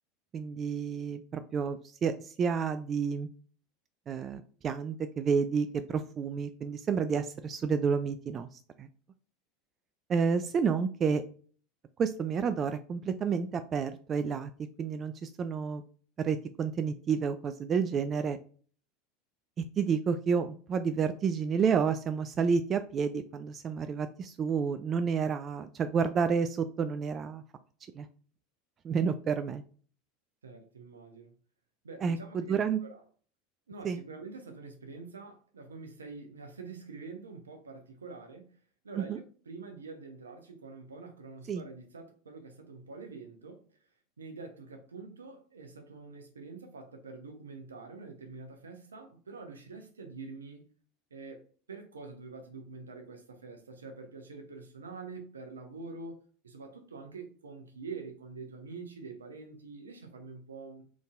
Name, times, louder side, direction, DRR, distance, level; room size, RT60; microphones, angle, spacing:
voice 1, 0.3-3.3 4.1-8.5 8.8-8.9 10.1-11.2 12.0-14.5 14.8-15.8 16.2-18.4 19.8-27.4 27.9-28.1 28.8-29.6 32.0-32.8 33.8-34.0 39.0-39.2 41.5-41.6, right 6 dB, 30° right, 0.3 m, -30 dB
voice 2, 30.4-31.3 31.8-33.0 33.7-38.5 38.8-43.6 44.2-50.7 51.1-60.8, right 4 dB, 80° right, 0.8 m, -46 dB
3.8 x 3.6 x 2.4 m
figure-of-eight pair, 80°, 0 cm